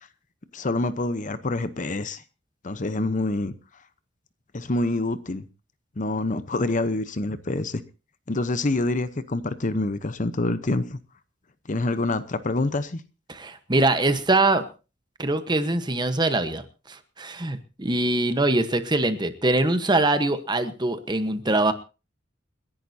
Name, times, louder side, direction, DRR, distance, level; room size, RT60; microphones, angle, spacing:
voice 1, 0.5-2.2 2.6-3.5 4.5-5.5 6.0-7.8 8.3-11.0 11.7-13.0, left 2 dB, 40° left, 0.8 m, -26 dB
voice 2, 13.3-14.6 15.2-16.6 16.9-21.7, right 2 dB, 20° right, 1.1 m, -23 dB
29.5 x 11.0 x 2.8 m
head